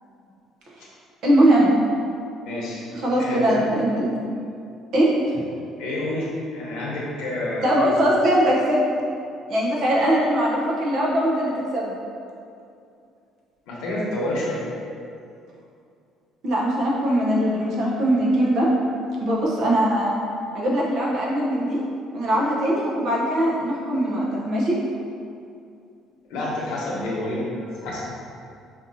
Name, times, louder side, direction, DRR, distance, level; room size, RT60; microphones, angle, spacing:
voice 1, 1.2-1.9 2.9-4.2 4.9-5.1 7.6-8.8 9.5-12.0 16.4-18.7 19.2-20.2 20.5-21.8 22.1-24.8, right 1 dB, 45° right, -4 dB, 0.8 m, -21 dB
voice 2, 2.4-2.9 3.1-3.6 5.8-8.0 13.7-14.6 26.3-27.5 27.8-28.0, left 1 dB, 80° left, -5 dB, 1.0 m, -28 dB
5.1 x 2.7 x 2.7 m, 2.5 s
cardioid pair, 170°, 0 cm